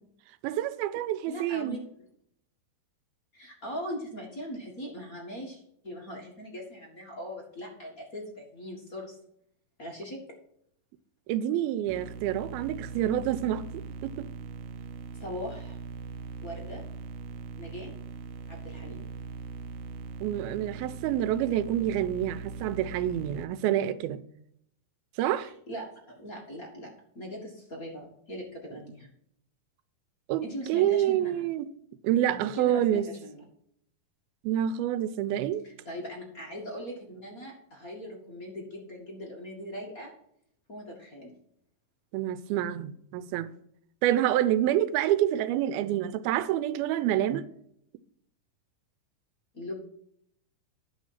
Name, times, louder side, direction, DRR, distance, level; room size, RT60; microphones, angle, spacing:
voice 1, 0.4-1.8 11.3-14.3 20.2-24.2 25.2-25.5 30.3-31.7 32.0-33.1 34.4-35.7 42.1-43.5 44.0-47.4, right 12 dB, 90° right, 2.5 m, -27 dB
voice 2, 1.3-1.8 3.3-9.1 9.8-10.2 15.1-15.8 16.4-16.8 17.6-17.9 18.5-19.0 25.4-26.9 27.1-29.1 30.4-31.4 32.3-33.4 35.6-40.1 40.7-41.3 49.5-49.7, equal, 35° left, 1.4 m, -40 dB
sound 1, 11.9-23.4, right 5 dB, 70° right, 2.1 m, -41 dB
10.0 x 6.3 x 5.6 m
omnidirectional pair, 4.3 m